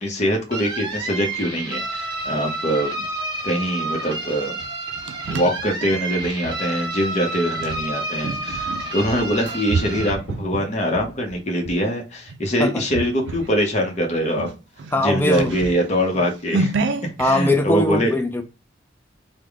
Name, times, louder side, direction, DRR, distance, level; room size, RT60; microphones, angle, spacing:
voice 1, 0.0-3.0 3.4-4.5 5.3-14.5 15.0-18.1, equal, 40° left, 0.8 m, -23 dB
sound 1, 0.5-10.1, right 2 dB, 25° right, 0.9 m, -30 dB
sound 2, 4.6-6.6 7.6-11.8 12.3-12.5 12.9-13.6 13.9-14.0 14.3-17.3, right 4 dB, 85° right, 0.4 m, -29 dB
voice 2, 14.9-15.6 17.2-18.4, left 2 dB, 10° left, 0.4 m, -21 dB
3.4 x 2.2 x 3.5 m
head